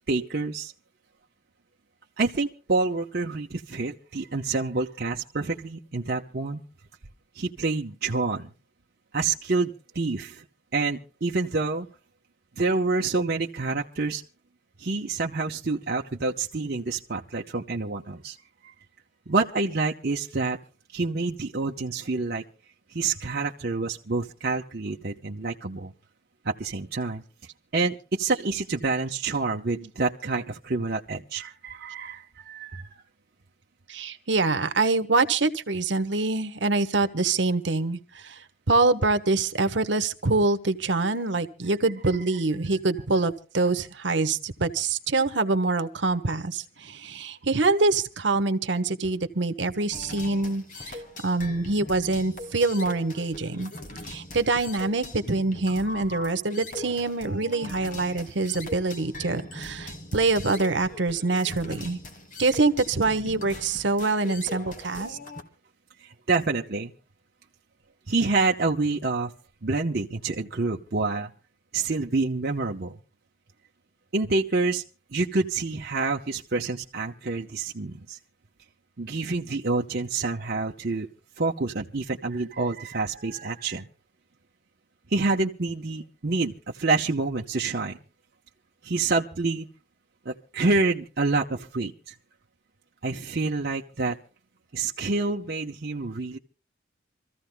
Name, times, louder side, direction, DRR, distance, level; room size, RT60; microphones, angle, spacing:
voice 1, 0.1-0.7 2.2-6.6 7.3-8.5 9.1-10.4 10.7-11.9 12.6-14.2 14.8-18.4 18.6-18.7 19.3-20.6 20.9-22.4 22.9-25.9 26.4-27.2 27.7-33.0 66.0-66.9 68.1-69.3 69.6-71.3 71.7-73.0 74.1-74.8 75.1-78.2 79.0-81.1 81.4-83.9 85.1-88.0 88.8-89.7 90.2-92.1 93.0-94.2 94.7-96.4, right 3 dB, 55° right, 0 dB, 0.8 m, -27 dB
voice 2, 33.9-38.4 38.7-51.0 51.2-53.7 54.1-62.0 62.4-65.2, right 3 dB, 70° right, 8 dB, 1.2 m, -25 dB
sound 1, 49.9-65.4, left 2 dB, 45° left, 1.9 m, -40 dB
27.0 x 14.5 x 2.2 m, 0.35 s
head